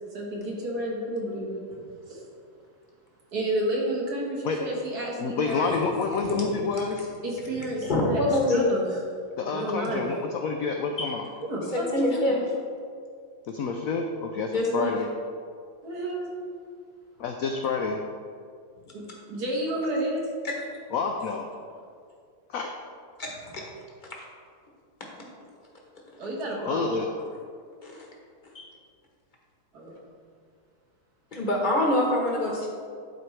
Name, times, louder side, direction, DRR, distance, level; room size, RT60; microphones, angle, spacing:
voice 1, 0.1-1.6 2.1-2.3 3.3-5.7 7.2-8.2 8.5-9.0 9.4-10.1 11.5-12.3 15.8-16.3 18.9-20.3 26.2-27.0 29.7-30.0, right 1 dB, 60° right, -3 dB, 1.8 m, -31 dB
voice 2, 5.2-7.1 9.4-11.2 13.5-15.1 17.2-18.0 20.9-21.5 22.5-22.7 26.7-27.1, left 4 dB, 85° left, 3 dB, 0.7 m, -28 dB
voice 3, 6.2-6.6 7.8-8.6 11.0-11.1 11.7-12.4 14.5-14.9 27.8-28.0 28.5-28.7 31.3-32.7, left 1 dB, 35° left, -2 dB, 1.0 m, -25 dB
11.0 x 4.4 x 3.2 m, 2.2 s
omnidirectional pair, 2.0 m